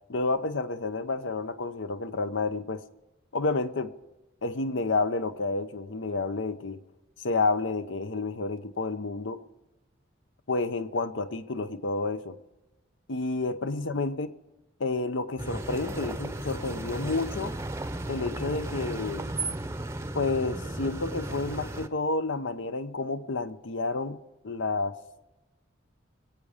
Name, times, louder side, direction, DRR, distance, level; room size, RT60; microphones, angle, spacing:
voice 1, 0.1-2.8 3.3-3.9 4.4-6.8 7.2-9.4 10.5-12.4 13.1-14.3 14.8-17.6 18.1-19.2 20.1-24.9, left 3 dB, 65° left, 0.8 m, -30 dB
sound 1, 15.4-21.9, right 2 dB, 15° right, 0.7 m, -35 dB
23.0 x 8.4 x 5.1 m
head